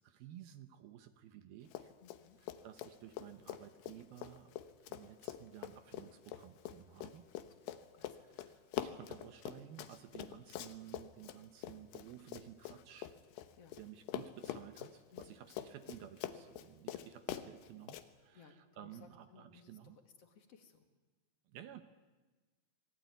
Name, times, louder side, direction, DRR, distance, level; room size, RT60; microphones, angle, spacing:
voice 1, 0.0-1.9 2.6-4.5 4.8-7.3 8.0-13.2 13.8-20.0 21.5-21.8, right 11 dB, 70° right, 10 dB, 2.5 m, -54 dB
Run, 1.7-2.2 2.5-13.8 14.1-18.1, left 12 dB, 75° left, 3.1 m, -45 dB
voice 2, 2.0-2.4 7.5-8.4 8.7-8.9 10.1-10.5 13.6-13.8 15.1-15.4 18.3-20.9, left 6 dB, 45° left, 6 dB, 2.5 m, -62 dB
27.0 x 20.0 x 9.4 m, 1.2 s
omnidirectional pair, 5.1 m